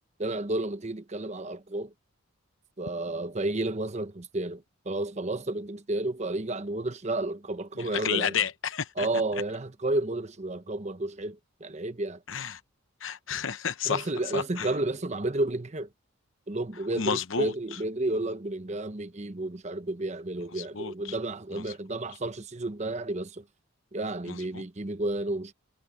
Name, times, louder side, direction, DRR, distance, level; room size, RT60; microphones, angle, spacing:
voice 1, 0.2-1.9 2.8-8.4 9.0-12.2 13.9-15.9 16.5-23.4 23.9-25.5, right 2 dB, 30° right, 0.9 m, -31 dB
voice 2, 7.8-9.1 12.3-12.6 13.0-14.1 14.3-14.7 17.0-17.5 20.6-21.1 21.5-21.6 24.3-24.6, left 7 dB, 60° left, 0.9 m, -31 dB
head